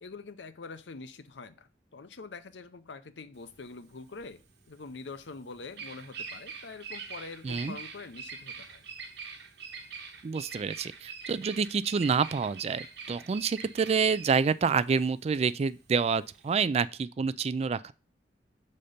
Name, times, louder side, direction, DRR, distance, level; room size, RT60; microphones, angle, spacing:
voice 1, 0.0-4.4 4.7-8.8 13.1-13.3, left 4 dB, 75° left, 0.7 m, -45 dB
Bird vocalization bird call bird song, 3.4-16.6, right 5 dB, 65° right, 1.1 m, -44 dB
voice 2, 7.4-7.8 10.2-17.9, right 5 dB, 35° right, 0.3 m, -28 dB
6.5 x 4.3 x 5.0 m
head